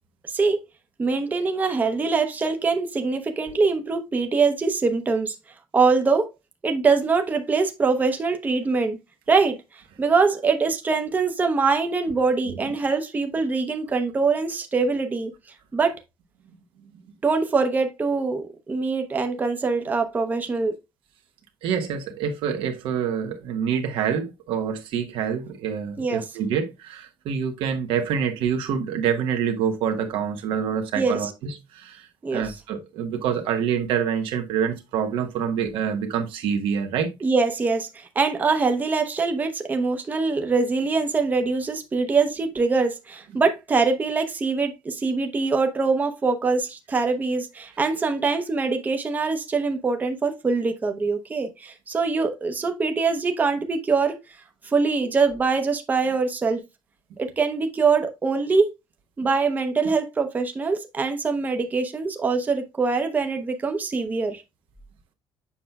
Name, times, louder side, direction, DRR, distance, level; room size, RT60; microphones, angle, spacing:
voice 1, 0.3-0.6 1.0-5.4 5.7-6.3 6.6-9.0 9.3-9.6 10.0-15.3 15.7-15.9 17.2-20.8 26.0-26.2 31.0-31.3 32.2-32.5 37.2-54.2 54.6-56.6 57.2-58.7 59.2-64.4, right 4 dB, 20° right, 0.7 m, -23 dB
voice 2, 21.6-37.1, right 7 dB, 80° right, 1.2 m, -26 dB
7.3 x 5.7 x 2.3 m
cardioid pair, 150°, 9 cm